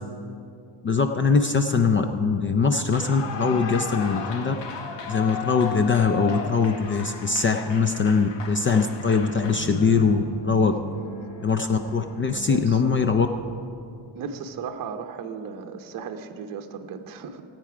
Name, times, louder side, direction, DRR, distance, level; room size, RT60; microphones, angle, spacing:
voice 1, 0.8-4.5 5.1-10.7 11.4-13.3, left 5 dB, 30° left, 7 dB, 0.4 m, -22 dB
Clapping / Cheering / Applause, 2.8-10.2, left 6 dB, 65° left, 1.5 m, -35 dB
sound 1, 3.2-5.4 9.0-13.6, right 2 dB, 45° left, 1.8 m, -40 dB
voice 2, 12.5-13.1 14.1-17.4, right 6 dB, 45° right, 5 dB, 0.8 m, -36 dB
17.5 x 8.9 x 4.9 m, 2.5 s
cardioid pair, 150°, 46 cm